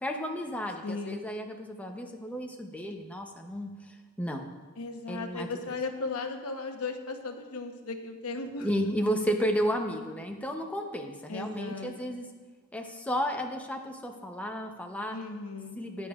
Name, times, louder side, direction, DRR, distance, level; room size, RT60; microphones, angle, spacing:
voice 1, 0.0-4.5 5.1-5.5 8.6-12.3 12.7-15.2 15.8-16.1, equal, 5° left, 3 dB, 0.7 m, -33 dB
voice 2, 0.8-1.2 4.8-8.7 11.3-11.9 15.1-15.8, left 3 dB, 80° left, 5 dB, 0.9 m, -36 dB
14.5 x 9.6 x 2.4 m, 1.3 s
head